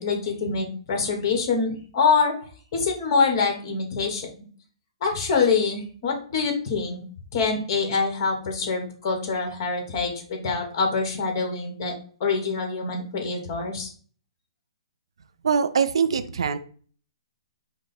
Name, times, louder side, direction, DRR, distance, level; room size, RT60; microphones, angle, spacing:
voice 1, 0.0-2.3 2.7-4.3 5.0-7.0 7.3-11.9 12.2-13.9, left 5 dB, 45° left, 3 dB, 1.4 m, -25 dB
voice 2, 15.4-16.6, right 6 dB, 75° right, 11 dB, 0.5 m, -23 dB
5.0 x 2.1 x 4.0 m, 0.43 s
hypercardioid pair, 140°, 3 cm